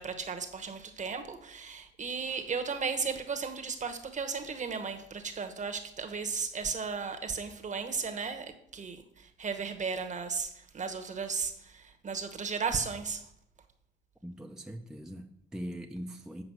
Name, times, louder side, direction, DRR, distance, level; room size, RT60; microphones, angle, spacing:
voice 1, 0.0-13.2, right 5 dB, 40° right, 6 dB, 1.1 m, -35 dB
voice 2, 14.2-16.4, equal, 5° right, 3 dB, 0.6 m, -41 dB
7.9 x 4.9 x 6.1 m, 0.74 s
cardioid pair, 90°, 20 cm